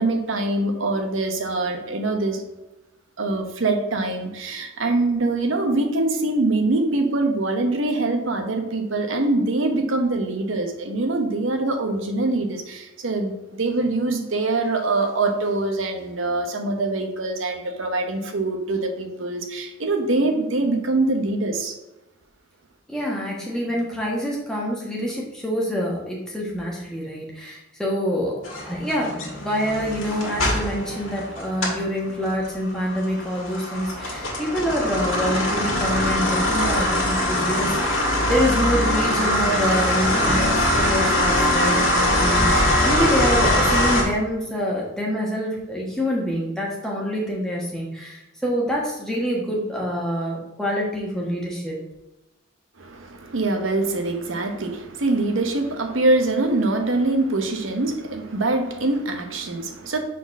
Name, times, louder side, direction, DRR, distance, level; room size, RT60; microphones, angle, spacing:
voice 1, 0.0-2.4 3.2-21.7 52.8-60.0, right 2 dB, 75° right, 5 dB, 0.9 m, -24 dB
voice 2, 22.9-51.8, equal, 5° left, -4 dB, 1.3 m, -26 dB
sound 1, 28.4-31.9 32.2-44.0, left 1 dB, 80° left, 1.8 m, -22 dB
4.8 x 4.1 x 5.8 m, 0.98 s
head